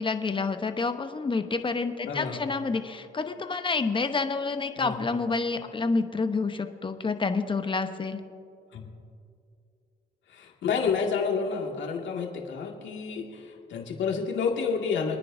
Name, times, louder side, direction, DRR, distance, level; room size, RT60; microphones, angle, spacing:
voice 1, 0.0-8.2, left 4 dB, 25° left, 8 dB, 0.9 m, -28 dB
voice 2, 2.1-2.5 4.8-5.0 8.7-8.9 10.3-15.2, left 5 dB, 70° left, 0 dB, 2.1 m, -29 dB
27.0 x 9.9 x 2.7 m, 2.4 s
cardioid pair, 90°, 20 cm